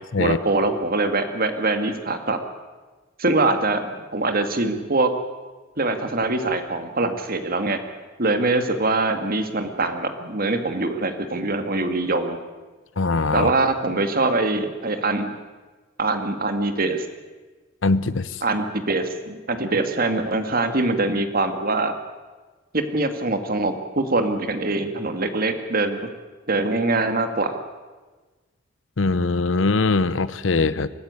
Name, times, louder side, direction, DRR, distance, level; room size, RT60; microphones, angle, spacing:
voice 1, 0.2-2.4 3.2-5.1 5.8-7.8 8.2-12.4 13.3-15.3 16.0-17.1 18.4-21.9 22.7-26.0 26.5-27.6, right 2 dB, 50° right, 7 dB, 2.1 m, -23 dB
voice 2, 13.0-13.5 17.8-18.4 29.0-30.9, left 3 dB, 85° left, 15 dB, 0.7 m, -21 dB
23.5 x 14.0 x 9.6 m, 1.3 s
head